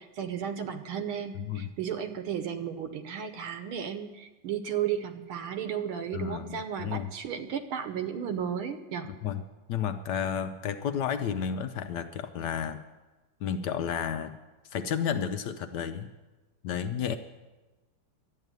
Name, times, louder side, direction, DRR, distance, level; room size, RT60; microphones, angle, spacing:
voice 1, 0.0-9.1, right 8 dB, 75° right, 8 dB, 1.7 m, -34 dB
voice 2, 1.3-1.8 6.1-7.1 9.0-12.8 13.4-14.4 14.7-16.1 16.6-17.2, left 8 dB, 75° left, 9 dB, 0.9 m, -32 dB
12.0 x 8.6 x 9.2 m, 1.2 s
omnidirectional pair, 2.4 m